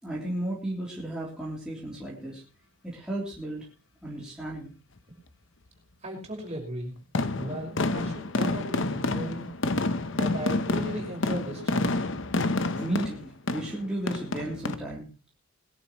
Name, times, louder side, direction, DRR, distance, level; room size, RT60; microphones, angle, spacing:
voice 1, 0.0-2.4 2.8-3.6 4.0-4.7 12.7-15.1, right 1 dB, 5° right, -5 dB, 3.3 m, -34 dB
voice 2, 6.0-7.0 7.3-9.5 10.1-12.1, right 1 dB, 30° right, 0 dB, 5.5 m, -36 dB
sound 1, 7.1-14.8, left 2 dB, 60° left, 0.9 m, -29 dB
21.5 x 12.0 x 3.1 m, 0.33 s
head